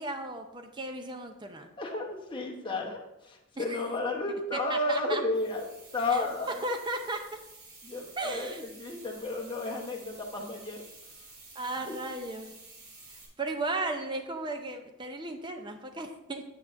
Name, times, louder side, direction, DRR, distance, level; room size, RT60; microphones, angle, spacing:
voice 1, 0.0-1.7 3.6-3.9 4.5-5.2 6.1-6.3 6.6-7.2 8.2-8.6 11.6-12.6 13.1-16.4, right 2 dB, 20° right, 5 dB, 0.6 m, -35 dB
voice 2, 1.8-5.7 5.9-6.6 7.8-10.8 11.8-12.0, left 2 dB, 20° left, 0 dB, 1.0 m, -32 dB
sound 1, 5.3-13.3, right 3 dB, 65° right, 2.0 m, -51 dB
8.6 x 8.3 x 2.6 m, 0.92 s
head